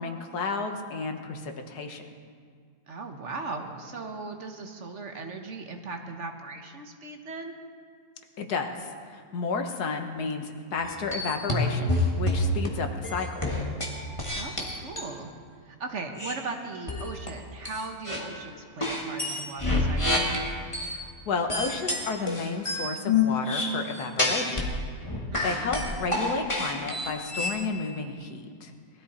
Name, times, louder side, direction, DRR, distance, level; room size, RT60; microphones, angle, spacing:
voice 1, 0.0-2.0 8.4-13.5 20.8-24.7 25.0-25.2 25.4-28.7, left 4 dB, 80° left, 5 dB, 1.6 m, -32 dB
voice 2, 2.9-7.5 14.4-15.3 15.6-20.3 25.3-25.7, right 3 dB, 50° right, 4 dB, 1.3 m, -38 dB
sound 1, 10.8-12.7 13.0-15.1 16.2-16.4 16.9-17.3 17.7-18.3 18.8-21.0 21.5-24.7 25.0-27.6, left 2 dB, 20° left, 1.7 m, -28 dB
19.5 x 13.0 x 4.2 m, 2.1 s
omnidirectional pair, 1.7 m